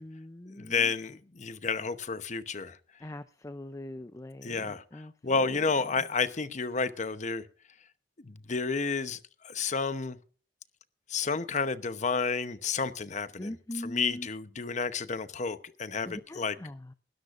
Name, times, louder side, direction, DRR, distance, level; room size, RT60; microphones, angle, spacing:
voice 1, 0.0-0.9 3.0-5.7 13.4-14.3 16.0-16.9, left 1 dB, 20° left, 0.5 m, -42 dB
voice 2, 0.5-2.8 4.4-7.4 8.2-10.2 11.1-13.5 13.8-16.5, left 4 dB, 40° left, 0.9 m, -31 dB
21.5 x 13.0 x 2.6 m
head